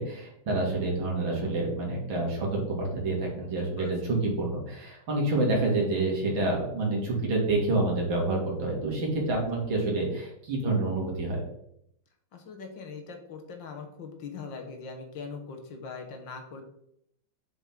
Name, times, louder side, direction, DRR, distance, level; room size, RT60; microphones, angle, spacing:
voice 1, 0.0-11.4, right 2 dB, 70° right, -2 dB, 2.9 m, -28 dB
voice 2, 3.5-3.9 12.3-16.6, left 5 dB, 65° left, 4 dB, 1.7 m, -41 dB
6.9 x 6.1 x 3.7 m, 0.73 s
omnidirectional pair, 2.3 m